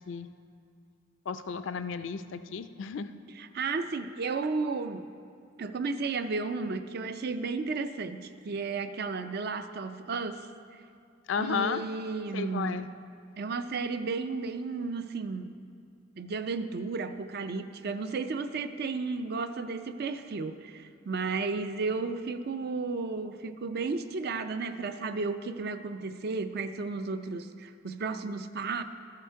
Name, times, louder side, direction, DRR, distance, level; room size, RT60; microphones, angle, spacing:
voice 1, 1.3-3.1 11.3-11.8 12.3-12.9, left 6 dB, 70° left, 11 dB, 0.4 m, -33 dB
voice 2, 3.4-5.0 5.6-10.5 11.4-12.8 13.4-15.5 16.2-28.8, right 4 dB, 55° right, 10 dB, 0.5 m, -33 dB
13.0 x 7.7 x 4.7 m, 2.4 s
head